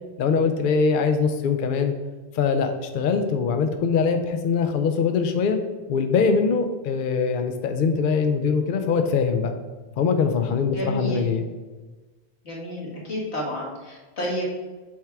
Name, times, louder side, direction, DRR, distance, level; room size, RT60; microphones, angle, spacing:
voice 1, 0.2-1.9 2.3-5.6 5.9-9.5 10.0-11.4, left 5 dB, 60° left, 6 dB, 0.7 m, -22 dB
voice 2, 10.7-11.2 12.4-14.5, equal, 85° left, -4 dB, 2.1 m, -30 dB
7.3 x 3.6 x 4.5 m, 1.3 s
omnidirectional pair, 1.1 m